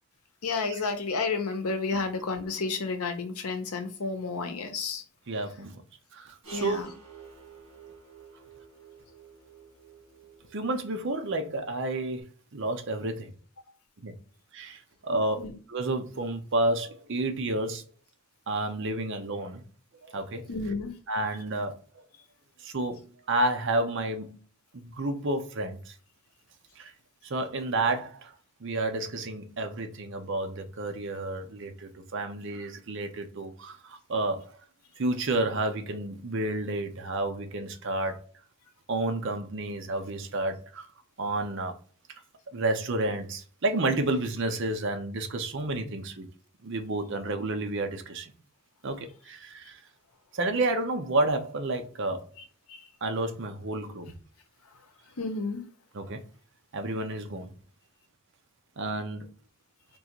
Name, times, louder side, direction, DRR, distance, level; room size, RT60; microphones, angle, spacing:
voice 1, 0.4-5.0 6.5-6.9 15.1-15.6 20.5-21.0 38.1-38.2 52.4-52.9 54.6-55.6, left 4 dB, 85° left, 0.7 m, -32 dB
voice 2, 5.3-5.8 6.1-6.8 10.5-13.3 14.0-14.1 14.5-15.4 15.7-17.8 18.5-19.6 20.0-20.5 21.1-22.0 22.6-24.4 24.7-25.9 26.8-26.9 27.2-28.3 28.6-34.6 35.0-38.3 38.9-40.9 41.2-41.7 42.5-46.3 46.6-48.3 48.8-49.8 50.3-52.3 53.0-54.1 56.0-56.2 56.7-57.5 58.8-59.3, right 2 dB, 55° right, 0.6 m, -30 dB
sound 1, 6.4-12.2, right 6 dB, 80° right, 1.6 m, -51 dB
3.8 x 2.4 x 2.9 m
head